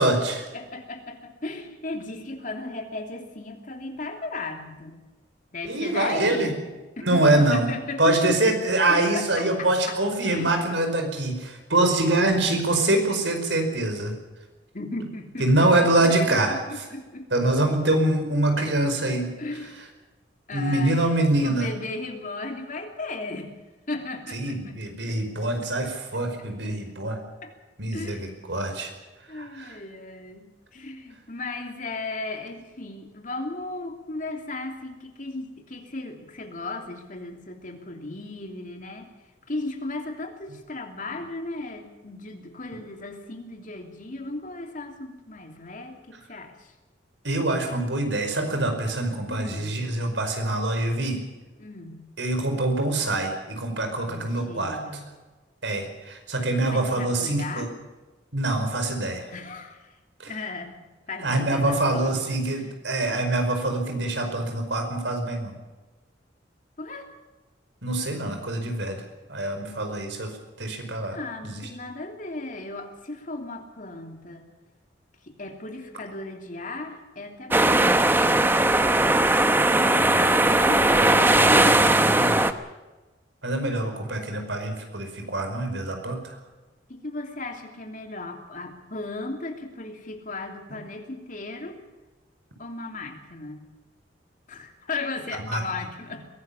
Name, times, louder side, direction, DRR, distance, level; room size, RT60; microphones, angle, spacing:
voice 1, 0.0-0.4 5.6-6.5 7.0-7.7 8.0-14.1 15.4-16.6 17.3-19.3 20.5-21.7 24.3-27.2 27.8-28.9 29.3-29.7 47.2-51.2 52.2-54.8 55.6-57.7 58.3-59.3 60.2-60.3 61.2-65.5 67.8-69.0 69.3-71.2 71.4-71.7 79.9-82.5 83.4-86.3 95.4-95.6, right 2 dB, 80° right, 5 dB, 5.1 m, -25 dB
voice 2, 0.5-5.0 5.5-6.6 7.0-8.6 8.9-10.0 10.3-10.6 14.7-17.5 18.6-18.7 19.4-19.8 20.5-23.5 23.9-25.2 25.8-25.9 26.4-26.5 27.4-27.5 27.9-28.3 29.3-39.1 39.5-46.7 49.3-49.8 51.6-52.0 54.0-55.1 56.7-57.7 59.3-60.0 60.3-60.8 61.1-62.7 66.8-67.1 71.1-74.5 75.2-77.9 79.7-81.8 86.9-91.8 92.6-93.7 94.5-96.3, left 2 dB, 45° left, 4 dB, 3.1 m, -36 dB
sound 1, 77.5-82.5, right 2 dB, 10° right, 1.0 m, -19 dB
22.5 x 17.5 x 7.2 m, 1.2 s
head